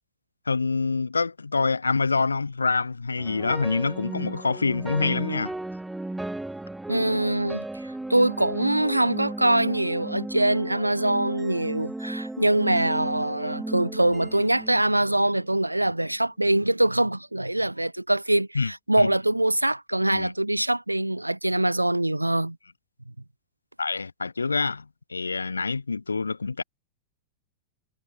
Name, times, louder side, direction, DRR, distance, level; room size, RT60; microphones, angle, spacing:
voice 1, 0.5-5.5 18.5-18.7 19.0-19.1 20.1-20.3 23.8-24.8 25.1-26.6, left 4 dB, 80° left, 0.4 m, -26 dB
sound 1, 3.2-15.5, right 2 dB, 5° right, 1.0 m, -36 dB
voice 2, 6.9-7.6 8.1-22.6, right 1 dB, 85° right, 0.5 m, -23 dB
figure-of-eight pair, 90°, 0 cm